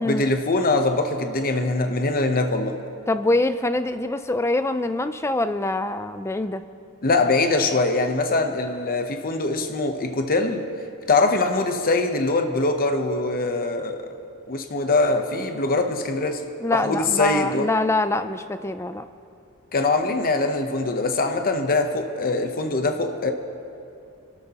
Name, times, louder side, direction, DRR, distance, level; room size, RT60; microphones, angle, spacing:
voice 1, 0.0-2.8 7.0-10.7 11.1-14.1 14.5-16.4 16.7-17.7 19.7-23.3, left 3 dB, 45° left, 0.8 m, -23 dB
voice 2, 3.1-6.6 16.6-19.1, left 2 dB, 10° left, 0.4 m, -24 dB
28.0 x 12.5 x 3.0 m
head